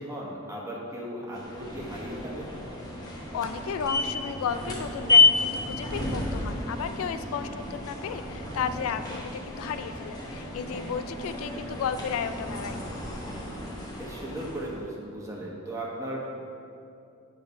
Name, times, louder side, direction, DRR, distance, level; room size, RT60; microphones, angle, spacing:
voice 1, 0.0-2.5 7.4-7.7 13.9-16.3, right 1 dB, 15° right, -4 dB, 1.2 m, -37 dB
sound 1, 1.3-14.8, left 3 dB, 20° left, 0.9 m, -30 dB
voice 2, 3.0-12.8, left 7 dB, 75° left, 12 dB, 0.3 m, -34 dB
8.7 x 3.8 x 5.4 m, 2.5 s
head